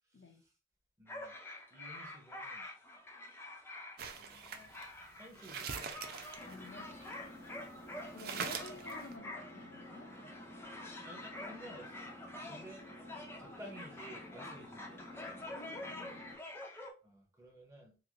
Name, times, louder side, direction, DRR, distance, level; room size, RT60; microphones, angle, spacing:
voice 1, 0.1-0.5 1.0-1.3 1.7-2.7 4.2-4.7 5.2-6.0 8.3-8.7 11.1-12.1 12.5-12.9 13.4-15.1 17.0-18.0, equal, 15° right, 0.7 m, -53 dB
sound 1, 1.1-16.9, left 1 dB, 10° left, 0.4 m, -48 dB
sound 2, 4.0-7.5 7.8-7.9 8.2-9.1, right 6 dB, 50° right, 0.4 m, -43 dB
Engine, 6.4-16.4, left 1 dB, 75° right, 1.0 m, -52 dB
voice 2, 6.5-7.0 8.1-10.1 12.4-12.7 15.3-16.3, left 3 dB, 65° left, 0.5 m, -52 dB
3.0 x 2.5 x 2.4 m
head